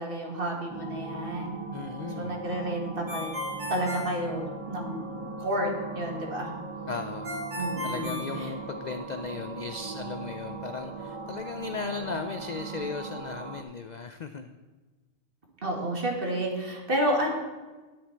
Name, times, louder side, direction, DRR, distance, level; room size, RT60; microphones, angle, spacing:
voice 1, 0.0-1.6 2.2-3.3 3.7-6.5 7.6-8.5 15.6-17.3, right 1 dB, 45° right, 0 dB, 2.0 m, -31 dB
Night Sky Above the Arctic, 0.7-13.6, right 3 dB, 25° right, 0.8 m, -39 dB
voice 2, 1.7-2.5 6.9-7.3 7.8-14.5, left 4 dB, 60° left, 8 dB, 0.4 m, -36 dB
Ringtone, 3.1-5.0 7.2-9.1, equal, 65° right, 2.4 m, -36 dB
10.5 x 10.0 x 4.5 m, 1.3 s
omnidirectional pair, 1.3 m